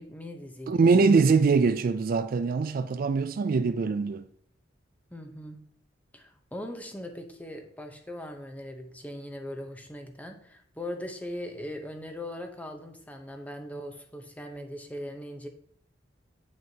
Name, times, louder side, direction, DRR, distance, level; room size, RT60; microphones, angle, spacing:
voice 1, 0.0-0.9 5.1-5.6 6.1-15.5, left 1 dB, 10° left, 0.8 m, -40 dB
voice 2, 0.7-4.3, right 4 dB, 45° right, 0.3 m, -23 dB
8.8 x 6.3 x 2.8 m
head